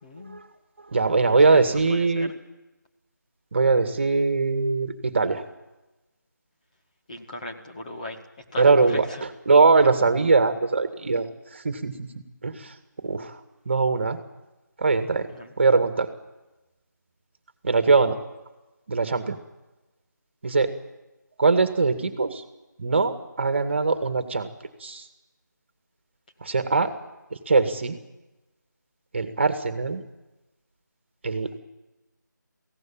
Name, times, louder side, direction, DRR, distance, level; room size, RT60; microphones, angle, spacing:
voice 1, 0.0-0.4 1.2-2.3 7.1-8.2 8.5-9.2 15.3-15.5, left 1 dB, 25° left, 1 dB, 2.0 m, -38 dB
voice 2, 0.9-2.3 3.5-5.4 8.6-9.1 9.5-11.3 11.5-12.1 12.4-12.7 13.0-13.4 13.7-14.2 14.8-15.3 15.6-16.1 17.6-18.2 18.9-19.4 20.4-20.7 21.4-22.4 22.8-24.5 24.8-25.1 26.4-26.9 27.3-28.0 29.1-30.0 31.2-31.6, right 4 dB, 35° right, 8 dB, 2.0 m, -21 dB
23.0 x 16.5 x 9.0 m, 1.0 s
figure-of-eight pair, 170°, 10 cm